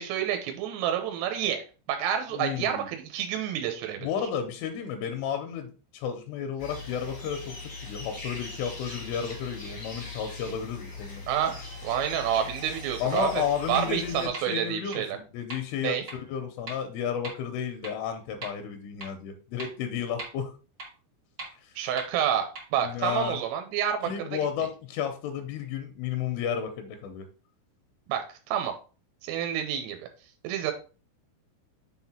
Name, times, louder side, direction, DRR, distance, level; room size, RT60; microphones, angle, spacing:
voice 1, 0.0-4.1 11.3-13.4 13.7-15.2 15.8-16.0 21.8-24.4 28.1-28.7 29.2-30.1 30.4-30.7, right 9 dB, 85° right, 5 dB, 3.3 m, -29 dB
voice 2, 2.3-2.9 4.0-7.6 7.8-11.2 13.0-20.5 22.8-23.4 24.1-27.3, left 8 dB, 85° left, 6 dB, 3.1 m, -32 dB
sound 1, 6.6-14.3, left 3 dB, 55° left, 1.1 m, -41 dB
sound 2, 13.2-13.3 13.7-13.8 14.3-14.4 14.9-15.0 15.5-15.6 16.1-16.2 16.7-16.8 17.2-17.3 17.8-17.9 18.4-18.5 19.0-19.1 19.6-19.7 20.2-20.3 20.8-20.9 21.4-21.5 22.0-22.1 22.5-22.6, right 2 dB, 50° right, 1.3 m, -38 dB
7.3 x 4.1 x 4.3 m, 0.35 s
omnidirectional pair, 5.9 m